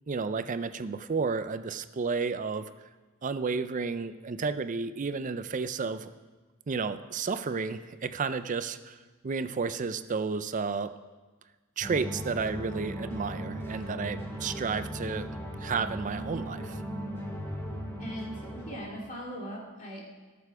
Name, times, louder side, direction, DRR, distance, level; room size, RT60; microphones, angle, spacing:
voice 1, 0.1-2.7 3.2-6.1 6.7-9.0 9.2-10.9 11.8-15.3 15.6-16.8, right 4 dB, 35° right, 12 dB, 0.4 m, -32 dB
sound 1, 11.8-18.8, equal, 10° left, 2.1 m, -37 dB
voice 2, 18.0-20.0, equal, 35° left, -3 dB, 2.5 m, -40 dB
17.5 x 7.0 x 4.8 m, 1.3 s
head